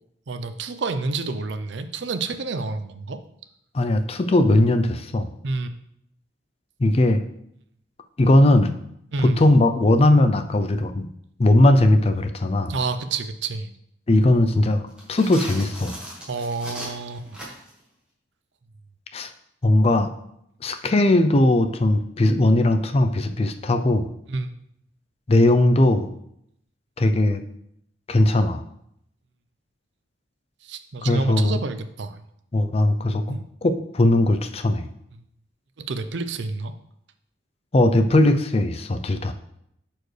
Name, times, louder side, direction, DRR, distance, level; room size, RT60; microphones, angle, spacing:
voice 1, 0.3-3.2 5.4-5.7 9.1-9.4 12.7-13.7 16.3-17.2 24.3-24.5 30.6-32.2 33.3-33.5 35.8-36.7, right 3 dB, 65° right, 9 dB, 0.5 m, -29 dB
voice 2, 3.7-5.3 6.8-7.2 8.2-8.7 9.2-11.1 11.4-12.7 14.1-15.9 19.1-19.3 19.6-20.1 20.6-24.1 25.3-26.1 27.0-27.4 28.1-28.6 31.0-31.6 32.5-33.4 33.6-34.8 37.7-39.3, left 1 dB, 30° left, 8 dB, 0.4 m, -19 dB
sound 1, 14.9-17.8, equal, 5° right, 1.7 m, -37 dB
11.0 x 4.4 x 3.2 m, 0.75 s
head